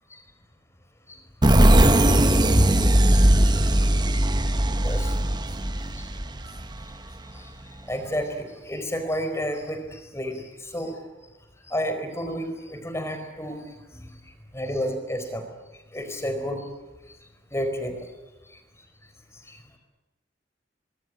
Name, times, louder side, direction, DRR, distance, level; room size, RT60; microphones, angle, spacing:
sound 1, 1.4-6.9, right 1 dB, 25° right, 1.2 m, -19 dB
voice 1, 4.8-5.1 6.0-6.1 7.3-7.5 7.9-11.1 11.7-13.6 13.9-14.1 14.5-15.4 15.9-16.6 17.5-18.0 19.5-19.6, equal, 15° left, 7 dB, 4.5 m, -31 dB
24.0 x 22.5 x 9.7 m, 1.1 s
head